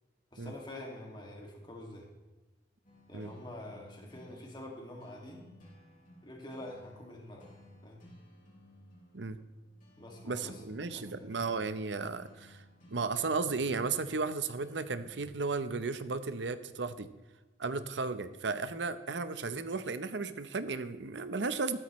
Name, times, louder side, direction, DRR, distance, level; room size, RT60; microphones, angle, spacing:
voice 1, 0.3-2.1 3.1-5.5 6.2-7.6 7.8-8.0 10.0-11.3 17.7-17.8, left 1 dB, 25° left, 0 dB, 2.2 m, -46 dB
sound 1, 2.8-15.2, left 1 dB, 50° left, 3.6 m, -58 dB
voice 2, 10.2-12.6 12.9-17.1 17.6-21.8, right 4 dB, 85° right, 12 dB, 0.8 m, -34 dB
14.5 x 12.5 x 3.2 m, 1.2 s
head